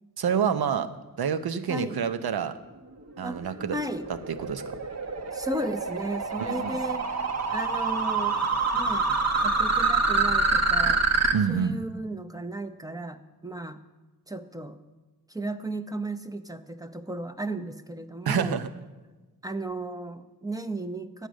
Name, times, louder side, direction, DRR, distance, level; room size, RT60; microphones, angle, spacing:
voice 1, 0.2-0.9 1.2-2.5 3.2-3.8 4.3-4.8 6.4-6.8 11.3-11.8 18.2-18.7, right 7 dB, 80° right, 10 dB, 0.8 m, -27 dB
sound 1, 3.3-11.3, right 3 dB, 45° right, 1.2 m, -26 dB
voice 2, 3.7-4.1 5.3-8.4 8.7-9.1 9.4-11.0 11.5-13.8 14.3-14.8 15.3-18.6 19.4-21.3, right 1 dB, 10° right, 9 dB, 0.7 m, -35 dB
10.0 x 8.1 x 6.2 m, 1.2 s
cardioid pair, 70°, 37 cm